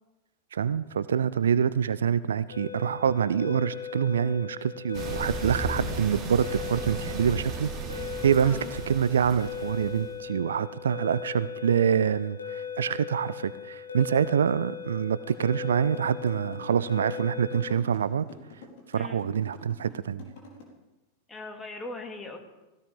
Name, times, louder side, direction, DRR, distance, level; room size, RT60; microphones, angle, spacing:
voice 1, 0.5-18.3 18.9-20.3, right 8 dB, 65° right, 17 dB, 0.4 m, -26 dB
sound 1, 2.5-17.7, left 7 dB, 80° left, 2.0 m, -39 dB
sound 2, 4.9-10.2, right 3 dB, 35° right, 3.9 m, -36 dB
voice 2, 8.4-8.7 18.9-19.2 21.3-22.4, left 2 dB, 15° left, 3 dB, 2.4 m, -40 dB
sound 3, 15.3-20.6, left 4 dB, 50° left, 4.4 m, -47 dB
18.0 x 16.5 x 3.7 m, 1.1 s
figure-of-eight pair, 90°, 0 cm